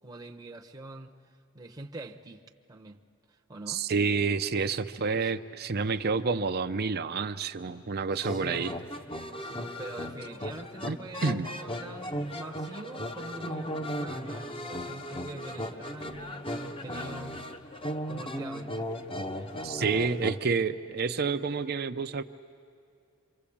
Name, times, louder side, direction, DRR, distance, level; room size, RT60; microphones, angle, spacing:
voice 1, 0.0-2.4 2.7-3.0 3.3-3.8 5.2-5.3 8.1-8.7 9.4-17.4 18.1-18.9, right 2 dB, 15° right, 0.9 m, -44 dB
voice 2, 3.7-8.7 10.8-11.5 19.6-22.2, right 4 dB, 45° right, 0.6 m, -29 dB
sound 1, 8.2-20.4, equal, 25° left, 1.0 m, -37 dB
27.0 x 25.0 x 8.6 m
head